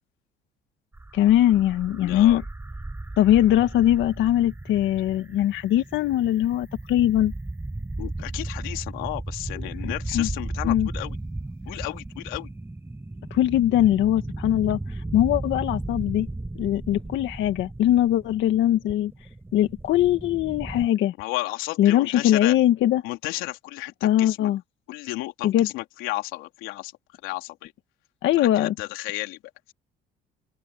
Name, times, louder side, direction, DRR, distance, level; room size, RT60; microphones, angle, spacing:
sound 1, 0.9-20.9, right 2 dB, 10° right, 6.7 m, -35 dB
voice 1, 1.1-2.4 3.2-7.3 9.8-10.3 10.6-10.9 13.3-16.3 16.6-19.1 19.5-21.1 21.8-23.0 24.0-24.6 25.4-25.7 28.2-28.7, left 12 dB, 70° left, 1.9 m, -21 dB
voice 2, 2.0-2.4 8.0-11.2 11.6-12.5 21.2-22.6 23.0-24.5 24.9-26.9 27.2-27.7 28.4-29.4, left 19 dB, 90° left, 3.3 m, -33 dB
open air
cardioid pair, 100°, 20 cm